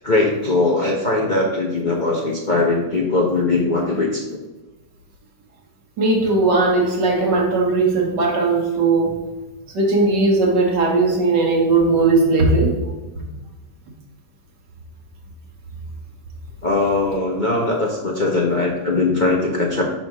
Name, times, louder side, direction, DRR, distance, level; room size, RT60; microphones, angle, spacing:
voice 1, 0.0-4.4 16.6-19.8, left 2 dB, 40° left, -2 dB, 0.6 m, -20 dB
voice 2, 6.0-9.2 9.7-12.8, right 3 dB, 80° right, -1 dB, 2.0 m, -18 dB
5.7 x 4.3 x 6.0 m, 1.1 s
omnidirectional pair, 1.8 m